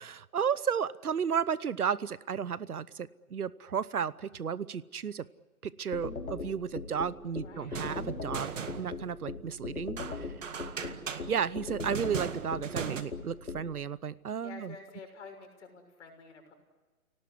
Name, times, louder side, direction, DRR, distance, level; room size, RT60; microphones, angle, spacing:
voice 1, 0.0-5.3 5.8-10.3 11.3-14.7, right 7 dB, 80° right, 18 dB, 1.0 m, -33 dB
sound 1, 5.9-13.6, left 4 dB, 80° left, 3.8 m, -38 dB
voice 2, 7.3-7.8 14.4-16.5, left 4 dB, 50° left, 5 dB, 6.4 m, -49 dB
sound 2, 7.6-9.2 10.0-13.0, right 7 dB, 60° right, 2.1 m, -38 dB
28.5 x 18.5 x 9.8 m, 1.3 s
hypercardioid pair, 145°, 44 cm